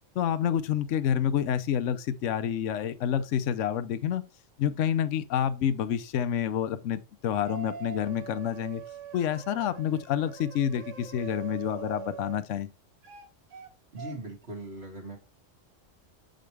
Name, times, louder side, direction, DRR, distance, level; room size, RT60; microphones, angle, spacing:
voice 1, 0.1-4.2 4.6-8.8 9.1-12.7, left 9 dB, 75° left, 1.0 m, -28 dB
sound 1, 7.3-12.4 13.0-13.7 14.0-14.2, right 7 dB, 75° right, 1.3 m, -43 dB
voice 2, 13.9-15.2, right 2 dB, 55° right, 2.7 m, -40 dB
7.6 x 5.1 x 3.3 m
omnidirectional pair, 1.3 m